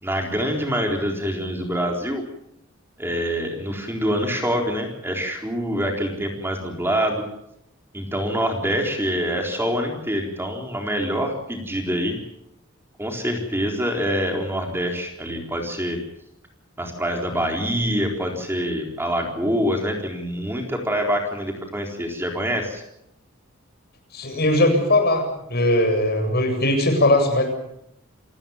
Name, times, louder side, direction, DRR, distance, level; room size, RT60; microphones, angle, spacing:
voice 1, 0.0-2.2 3.0-7.2 7.9-12.2 13.0-16.0 16.8-22.8, equal, 10° right, 2 dB, 4.0 m, -25 dB
voice 2, 24.1-25.2 25.5-27.4, left 1 dB, 50° left, 4 dB, 7.9 m, -19 dB
29.0 x 18.5 x 7.2 m, 0.77 s
head